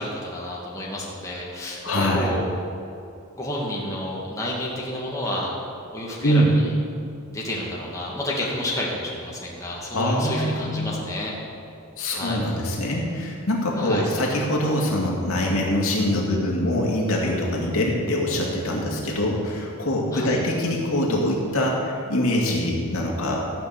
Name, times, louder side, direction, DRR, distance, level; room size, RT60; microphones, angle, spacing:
voice 1, 0.0-2.4 3.4-5.5 5.9-6.8 7.3-11.3 12.1-12.4 13.7-14.1 20.1-20.4, left 1 dB, 15° left, -4 dB, 2.0 m, -30 dB
voice 2, 1.8-2.3 6.2-6.5 9.9-11.0 12.0-23.4, left 1 dB, 75° left, -2 dB, 2.3 m, -24 dB
14.0 x 6.0 x 8.1 m, 2.5 s
head